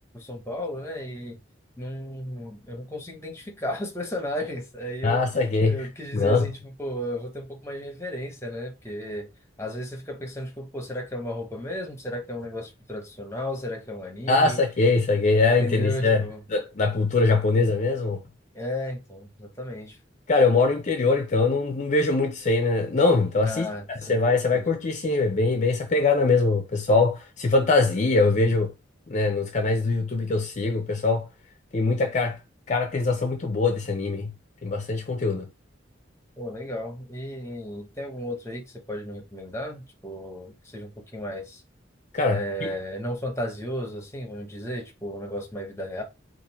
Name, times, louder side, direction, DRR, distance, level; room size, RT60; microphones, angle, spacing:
voice 1, 0.1-1.4 1.8-5.2 5.7-9.3 9.6-14.6 15.1-16.4 18.5-20.0 23.4-24.2 24.5-24.7 36.4-41.6 42.3-46.0, equal, 15° left, 1.0 m, -34 dB
voice 2, 5.0-5.8 6.1-6.5 14.3-18.2 20.3-28.7 29.1-31.3 31.7-32.4 32.7-34.3 34.6-35.5 42.1-42.7, left 3 dB, 40° left, 0.6 m, -22 dB
3.7 x 2.6 x 4.2 m
head